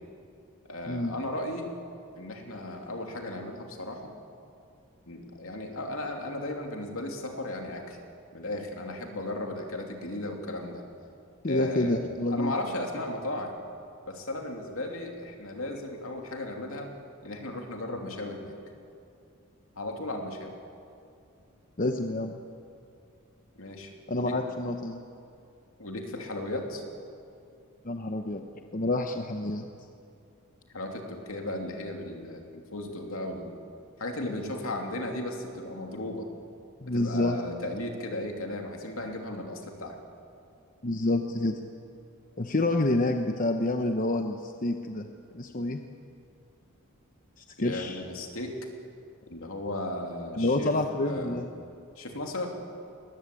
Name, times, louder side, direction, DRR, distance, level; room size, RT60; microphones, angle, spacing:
voice 1, 0.7-1.7 2.1-4.1 5.1-8.0 8.3-10.8 11.4-13.5 14.1-16.9 17.2-18.5 19.7-20.5 23.6-24.4 25.8-26.8 30.7-33.5 34.0-36.3 36.8-40.0 47.6-48.6 49.3-50.7 51.0-51.4 52.0-52.5, left 1 dB, 70° left, 3 dB, 3.0 m, -35 dB
voice 2, 11.4-12.5 21.8-22.4 24.1-25.0 27.8-28.5 28.7-29.6 36.8-37.4 40.8-41.6 42.4-45.1 45.3-45.8 47.4-48.0 50.4-51.5, left 2 dB, 40° left, 5 dB, 0.9 m, -28 dB
21.5 x 19.5 x 8.5 m, 2.5 s
head